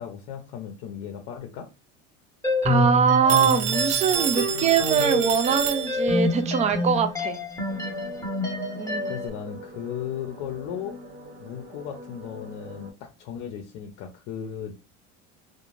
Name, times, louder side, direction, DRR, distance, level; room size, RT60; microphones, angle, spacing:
voice 1, 0.0-1.7 9.1-11.0 11.4-14.7, left 9 dB, 60° left, 0.6 m, -36 dB
sound 1, 2.4-9.3, left 1 dB, 10° left, 0.8 m, -27 dB
voice 2, 2.6-7.4 8.8-9.1, right 6 dB, 20° right, 0.4 m, -22 dB
Telephone, 3.3-6.3, right 9 dB, 70° right, 0.7 m, -28 dB
sound 2, 7.7-12.9, left 1 dB, 35° right, 1.0 m, -43 dB
2.4 x 2.2 x 3.1 m
supercardioid pair, 115°, 36 cm